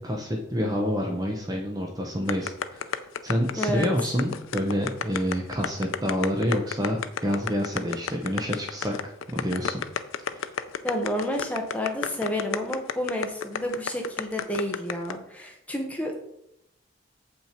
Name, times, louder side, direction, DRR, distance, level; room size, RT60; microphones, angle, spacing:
voice 1, 0.0-3.0 3.2-9.8 10.3-10.4, equal, 20° right, 2 dB, 0.8 m, -28 dB
sound 1, 2.3-15.1, left 7 dB, 85° left, 0.5 m, -30 dB
voice 2, 3.6-3.9 10.8-16.1, left 1 dB, 5° left, 1 dB, 1.1 m, -30 dB
7.6 x 5.8 x 4.4 m, 0.80 s
head